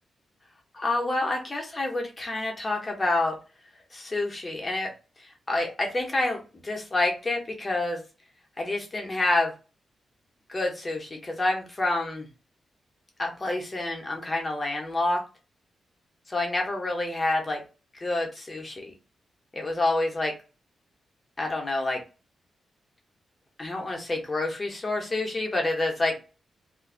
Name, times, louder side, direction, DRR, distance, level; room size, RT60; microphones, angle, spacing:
voice 1, 0.7-3.3 3.9-4.9 5.2-8.0 8.6-9.5 10.5-12.3 13.2-15.2 16.3-17.6 18.0-18.9 19.5-20.3 21.4-22.0 23.6-26.2, left 2 dB, 20° left, 1 dB, 0.8 m, -28 dB
2.5 x 2.5 x 3.7 m, 0.33 s
wide cardioid pair, 155°, 0 cm